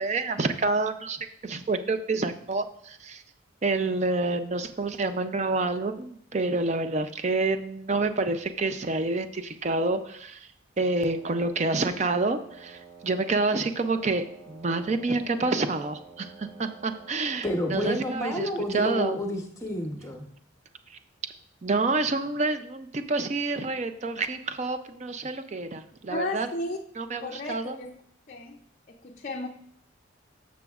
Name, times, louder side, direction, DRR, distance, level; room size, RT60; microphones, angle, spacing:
voice 1, 0.0-3.2 3.6-10.5 10.8-17.5 17.7-19.2 21.6-26.5 27.0-27.8, right 3 dB, 35° right, 9 dB, 0.4 m, -28 dB
Wind instrument woodwind instrument, 11.0-18.4, right 5 dB, 5° right, 2.0 m, -50 dB
voice 2, 17.4-20.2, left 1 dB, 15° left, 3 dB, 0.9 m, -30 dB
voice 3, 26.1-26.8 27.2-28.0 28.3-28.6 28.9-29.5, left 2 dB, 40° left, 1 dB, 0.5 m, -34 dB
13.5 x 6.1 x 2.4 m, 0.68 s
head